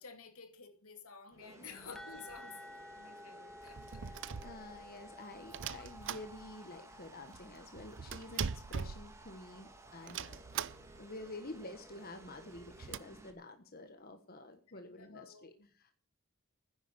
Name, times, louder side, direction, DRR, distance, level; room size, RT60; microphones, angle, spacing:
voice 1, 0.0-4.0 7.8-7.9 14.7-15.7, left 5 dB, 85° left, 6 dB, 2.7 m, -53 dB
sound 1, 1.3-13.3, right 2 dB, 15° right, 2.0 m, -57 dB
voice 2, 1.4-2.0 4.0-10.4 11.0-15.9, left 2 dB, 45° left, 7 dB, 1.3 m, -49 dB
sound 2, 1.9-7.5, left 1 dB, 5° left, 0.9 m, -53 dB
sound 3, 3.6-5.0 5.5-6.8 7.1-7.2 7.3-9.6 10.1-11.1 11.5-11.6 11.8-11.9 12.4-13.0, right 7 dB, 60° right, 0.6 m, -42 dB
11.0 x 10.0 x 8.5 m, 0.42 s
head